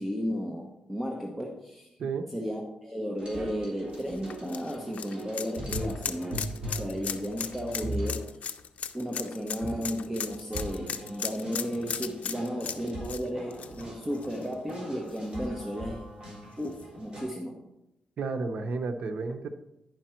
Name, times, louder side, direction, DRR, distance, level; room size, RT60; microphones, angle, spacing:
voice 1, 0.0-1.9 2.3-8.3 8.9-16.1 16.6-17.6, equal, 10° right, 0 dB, 1.0 m, -34 dB
sound 1, 3.2-8.2 9.6-17.2, right 1 dB, 35° right, 3.6 m, -40 dB
sound 2, 3.9-14.7 15.1-15.2 16.6-16.7, left 7 dB, 70° left, 0.5 m, -37 dB
voice 2, 18.2-19.5, right 4 dB, 70° right, 6 dB, 0.9 m, -32 dB
10.5 x 5.1 x 4.4 m, 0.87 s
wide cardioid pair, 115°, 2 cm